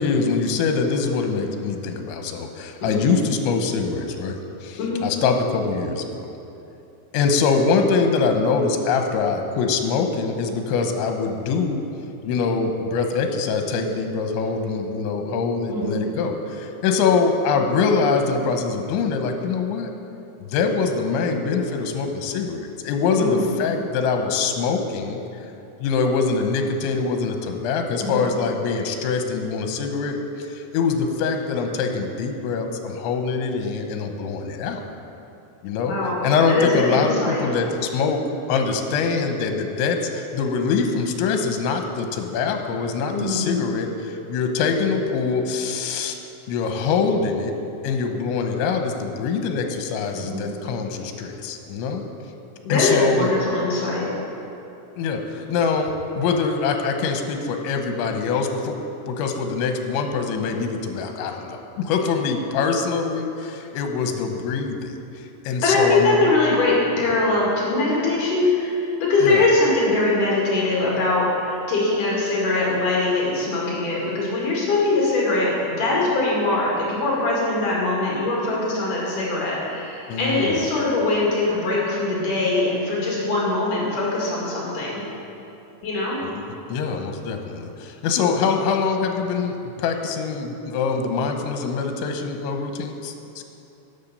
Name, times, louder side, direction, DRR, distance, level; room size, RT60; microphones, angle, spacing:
voice 1, 0.0-6.3 7.1-11.8 12.2-19.9 20.4-25.2 25.8-34.8 35.6-36.0 36.2-38.2 38.5-46.2 46.5-47.5 47.8-52.0 52.7-53.3 55.0-55.9 56.2-58.8 59.1-66.3 69.2-69.4 80.1-80.6 86.2-86.3 86.7-93.1, left 5 dB, 85° left, 5 dB, 3.1 m, -24 dB
voice 2, 23.1-23.5 28.0-28.2 35.9-37.5 43.1-43.6 50.1-50.5 52.6-54.1 65.6-85.0 85.8-86.2, left 2 dB, 50° left, -5 dB, 3.0 m, -22 dB
11.0 x 7.4 x 6.7 m, 2.8 s
omnidirectional pair, 5.4 m